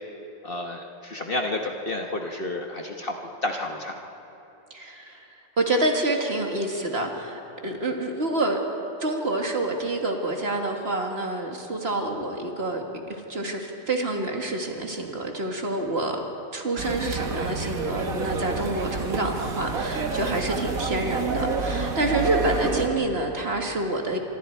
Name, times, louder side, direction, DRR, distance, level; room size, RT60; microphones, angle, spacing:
voice 1, 0.4-3.2 3.4-4.0, left 2 dB, 40° left, 2 dB, 1.4 m, -30 dB
voice 2, 4.7-5.3 5.6-8.6 9.0-12.8 13.1-16.2 16.5-24.2, right 2 dB, 40° right, 2 dB, 2.0 m, -27 dB
sound 1, 16.8-22.9, right 4 dB, 65° right, 1.8 m, -29 dB
26.0 x 24.5 x 4.5 m, 3.0 s
omnidirectional pair, 1.6 m